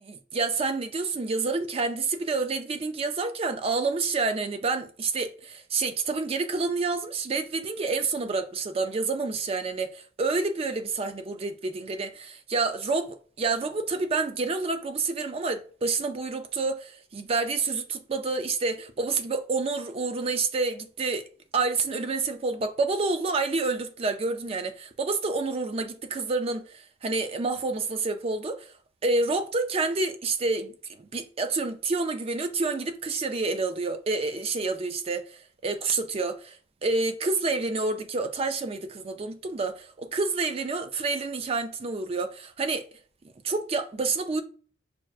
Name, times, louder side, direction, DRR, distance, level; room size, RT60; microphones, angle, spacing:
voice 1, 0.0-21.2 21.5-28.7 29.0-36.6 36.8-42.8 43.4-44.4, right 3 dB, 30° right, 0.4 m, -28 dB
6.0 x 2.1 x 2.4 m
head